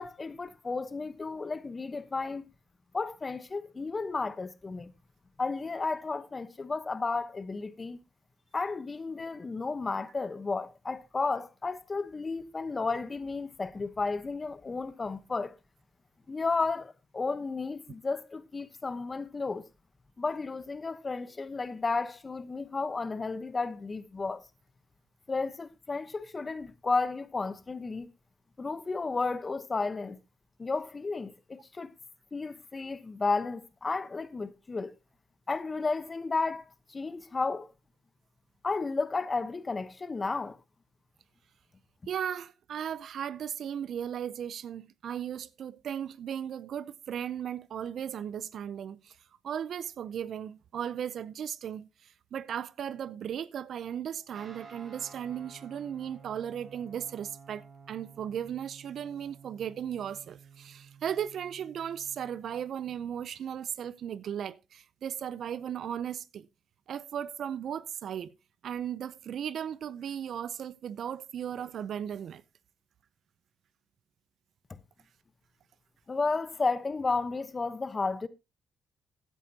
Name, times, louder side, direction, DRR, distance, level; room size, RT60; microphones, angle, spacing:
voice 1, 0.0-2.5 2.9-4.9 5.4-8.0 8.5-15.6 16.3-19.7 20.2-24.4 25.3-28.1 28.6-30.2 30.6-31.9 32.3-34.9 35.5-37.7 38.6-40.6 76.1-78.3, left 4 dB, 30° left, 1.0 m, -33 dB
voice 2, 42.1-49.2 49.4-66.5 66.9-68.3 68.6-72.4, right 9 dB, 65° right, 0.6 m, -36 dB
Guitar, 54.3-62.4, right 5 dB, 45° right, 5.0 m, -53 dB
15.5 x 9.3 x 2.8 m
cardioid pair, 90°, 0 cm